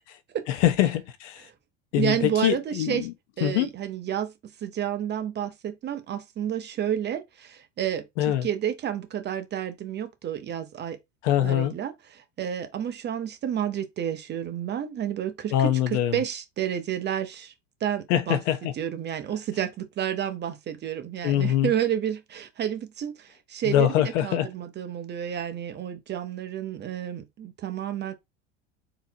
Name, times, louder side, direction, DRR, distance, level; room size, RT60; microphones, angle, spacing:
voice 1, 0.5-1.5 1.9-3.1 3.4-3.7 8.2-8.5 11.2-11.7 15.5-16.2 18.1-18.7 21.2-21.7 23.6-24.5, left 12 dB, 75° left, 0.9 m, -23 dB
voice 2, 2.0-3.1 3.4-4.3 4.6-11.0 11.4-17.5 17.8-18.4 18.8-28.1, right 9 dB, 30° right, 0.7 m, -30 dB
4.0 x 2.8 x 2.8 m
supercardioid pair, 120°, 36 cm